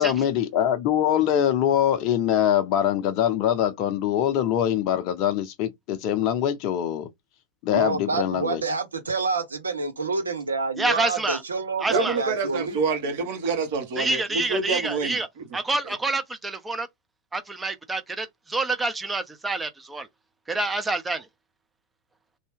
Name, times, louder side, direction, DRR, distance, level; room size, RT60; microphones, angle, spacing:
voice 1, 0.0-7.1 7.6-8.6, left 10 dB, 45° left, 0.6 m, -23 dB
voice 2, 7.7-12.8, right 4 dB, 85° right, 0.8 m, -28 dB
voice 3, 10.8-11.4 11.8-12.2 14.0-15.3 15.5-16.9 17.3-20.1 20.5-21.3, right 2 dB, 15° right, 0.6 m, -27 dB
voice 4, 11.9-15.2 15.8-15.9, right 4 dB, 60° right, 1.3 m, -27 dB
2.7 x 2.1 x 3.3 m
figure-of-eight pair, 90°, 0 cm